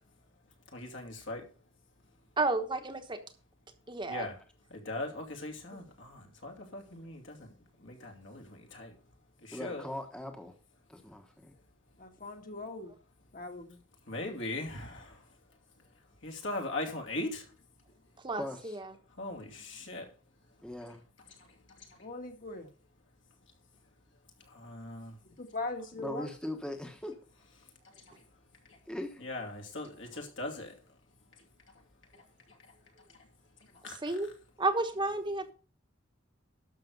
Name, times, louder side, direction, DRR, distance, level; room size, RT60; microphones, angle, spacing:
voice 1, 0.7-1.4 4.1-4.3 4.7-7.4 7.8-8.9 9.4-9.9 14.1-15.1 16.2-17.4 19.2-20.1 24.5-25.1 29.2-30.7 33.8-34.0, left 2 dB, 70° left, 1 dB, 2.6 m, -39 dB
voice 2, 2.4-3.2 3.9-4.3 5.7-5.8 18.2-18.8 34.0-34.3 34.6-35.5, right 2 dB, 25° right, 6 dB, 1.2 m, -31 dB
voice 3, 9.5-10.5 10.9-11.5 18.3-18.8 20.6-21.0 26.0-27.2 28.9-29.2, left 1 dB, 5° left, 4 dB, 1.1 m, -40 dB
voice 4, 12.0-13.0 13.3-13.8 22.0-22.7 25.4-26.3, left 2 dB, 45° left, 5 dB, 1.7 m, -40 dB
12.0 x 6.5 x 5.2 m, 0.37 s
head